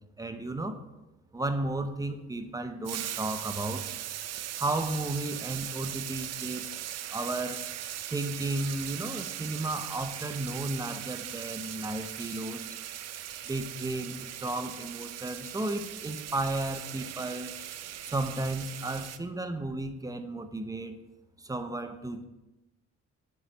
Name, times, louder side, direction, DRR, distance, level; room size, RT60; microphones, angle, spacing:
voice 1, 0.2-0.8 1.3-3.8 4.5-6.6 7.1-7.6 8.1-12.8 13.4-17.5 18.0-20.9 21.4-22.2, right 2 dB, 10° right, 8 dB, 0.6 m, -33 dB
sound 1, 2.8-19.2, right 11 dB, 60° right, 0.5 m, -39 dB
8.0 x 3.1 x 5.2 m, 1.0 s
cardioid pair, 90°, 30 cm